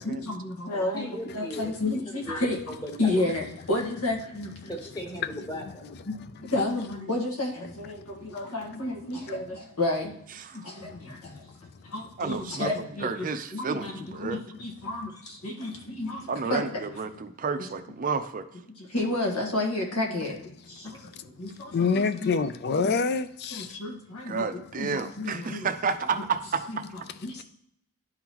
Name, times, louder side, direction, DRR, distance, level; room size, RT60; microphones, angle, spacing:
voice 1, 0.1-4.7 6.1-6.2 6.4-10.2 10.5-16.6 18.8-20.4 20.7-21.1 21.4-22.3 23.5-25.7 26.7-27.4, left 2 dB, 85° left, 1.6 m, -31 dB
voice 2, 0.7-1.7 2.3-2.4 2.7-3.1 4.7-5.9, equal, 15° left, 1.1 m, -37 dB
voice 3, 8.0-8.5 9.0-9.1 10.8-11.9 15.7-16.3 21.0-21.3 21.7-23.8, left 4 dB, 45° left, 0.4 m, -30 dB
voice 4, 12.2-14.4 16.3-18.5 24.3-26.8, right 5 dB, 40° right, 0.5 m, -31 dB
11.5 x 3.9 x 3.0 m
head